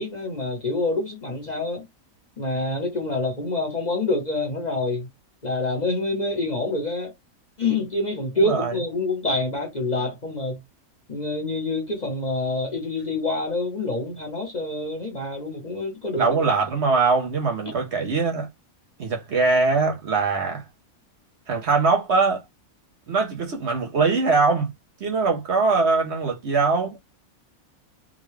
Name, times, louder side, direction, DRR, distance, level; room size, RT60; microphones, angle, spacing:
voice 1, 0.0-1.8 2.4-5.1 5.4-7.1 7.6-10.6 11.1-16.4 17.7-17.8, left 2 dB, 35° left, 0.9 m, -26 dB
voice 2, 8.4-8.8 16.2-18.5 19.0-20.6 21.5-22.4 23.1-24.7 25.0-27.0, right 4 dB, 55° right, 1.0 m, -22 dB
3.7 x 2.2 x 3.1 m
omnidirectional pair, 1.5 m